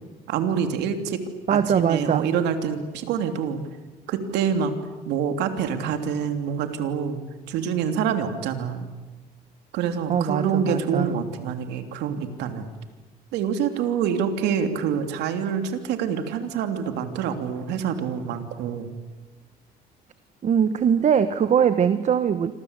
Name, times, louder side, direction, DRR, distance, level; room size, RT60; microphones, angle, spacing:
voice 1, 0.3-1.2 1.5-3.6 4.1-4.7 5.1-7.2 7.5-8.9 9.7-12.7 13.3-18.9, right 7 dB, 85° right, 7 dB, 3.2 m, -26 dB
voice 2, 1.5-2.3 10.1-11.1 20.4-22.5, right 7 dB, 45° right, 11 dB, 1.3 m, -21 dB
28.0 x 25.5 x 8.3 m, 1.2 s
cardioid pair, 110°, 17 cm